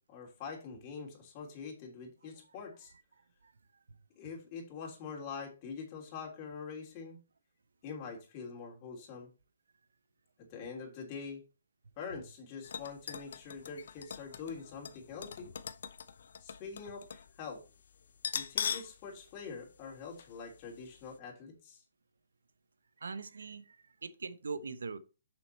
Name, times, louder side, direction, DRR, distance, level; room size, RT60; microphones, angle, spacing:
voice 1, 0.0-2.9 4.2-7.2 7.8-9.3 10.5-11.4 12.0-15.5 16.4-17.6 18.3-21.8, left 5 dB, 30° left, 3.0 m, -44 dB
sound 1, 12.6-17.3 17.6-17.7 18.2-19.0 19.3-19.4 20.2-20.4 20.7-20.8, left 7 dB, 65° left, 0.7 m, -40 dB
voice 2, 23.0-25.0, right 4 dB, 85° right, 0.8 m, -41 dB
6.4 x 6.1 x 4.2 m
hypercardioid pair, 150°, 0 cm